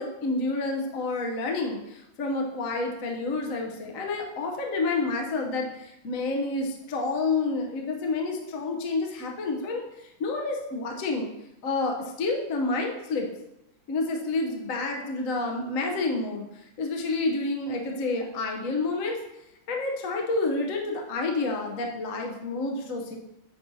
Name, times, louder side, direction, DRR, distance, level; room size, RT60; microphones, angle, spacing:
voice 1, 0.0-9.8 10.2-11.3 11.6-13.3 13.9-16.4 16.8-19.2 19.7-23.2, left 3 dB, 55° left, 1 dB, 1.0 m, -29 dB
9.3 x 5.4 x 2.7 m, 0.87 s
omnidirectional pair, 2.3 m